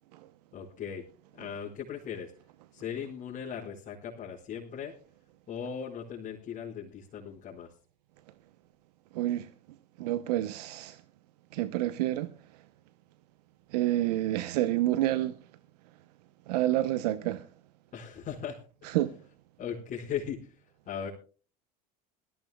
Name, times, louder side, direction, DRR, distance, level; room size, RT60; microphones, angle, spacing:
voice 1, 0.5-1.0 1.3-2.3 2.7-4.9 5.5-7.7 17.9-19.0 19.6-20.5 20.9-21.1, left 8 dB, 45° left, 4.9 m, -38 dB
voice 2, 9.1-9.5 10.0-11.0 11.5-12.3 13.7-15.3 16.5-17.4 18.9-19.1, right 14 dB, 85° right, 0.8 m, -28 dB
23.0 x 15.0 x 2.2 m
supercardioid pair, 95°, 20 cm